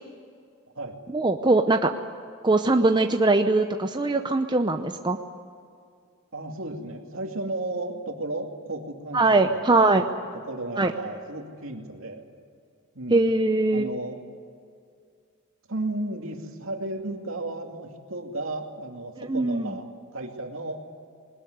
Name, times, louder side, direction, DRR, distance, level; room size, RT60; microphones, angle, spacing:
voice 1, 1.1-1.9 2.4-5.2 9.1-10.0 10.8-10.9 13.1-13.9 19.2-19.7, right 2 dB, 20° right, 6 dB, 0.7 m, -21 dB
voice 2, 6.3-10.1 10.3-12.3 12.9-13.3 13.7-14.2 15.7-20.9, right 2 dB, 65° right, 3 dB, 2.6 m, -34 dB
21.0 x 19.5 x 9.5 m, 2.3 s
head